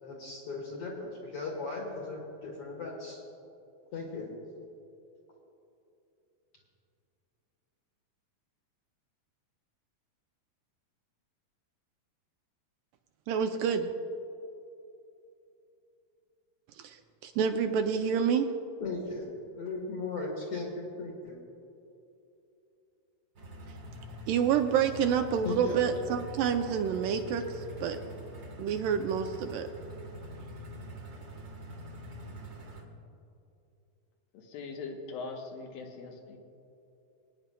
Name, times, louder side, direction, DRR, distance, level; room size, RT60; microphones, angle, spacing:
voice 1, 0.0-3.2 3.9-4.4 18.8-19.3 19.5-21.4 25.4-25.8, left 3 dB, 60° left, 1.7 m, -37 dB
voice 2, 13.3-13.9 16.8-17.0 17.2-18.5 24.3-28.0 28.6-29.7, right 7 dB, 80° right, 2.1 m, -28 dB
sound 1, 23.4-32.8, equal, 55° right, 1.2 m, -44 dB
voice 3, 34.3-36.4, left 4 dB, 85° left, 2.8 m, -41 dB
26.5 x 9.6 x 2.2 m
omnidirectional pair, 4.1 m